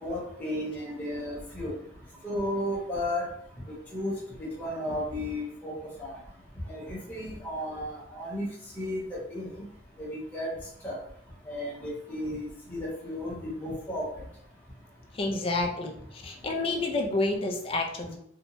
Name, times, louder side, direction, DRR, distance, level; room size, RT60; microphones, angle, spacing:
voice 1, 0.0-1.7 2.2-3.3 3.7-5.7 6.0-6.1 6.7-8.5 8.7-9.6 10.0-10.5 10.8-11.0 11.5-14.1, left 1 dB, 10° left, -7 dB, 0.9 m, -34 dB
voice 2, 15.2-15.9 16.2-18.2, left 2 dB, 30° left, 3 dB, 0.3 m, -29 dB
2.7 x 2.1 x 2.9 m, 0.70 s
head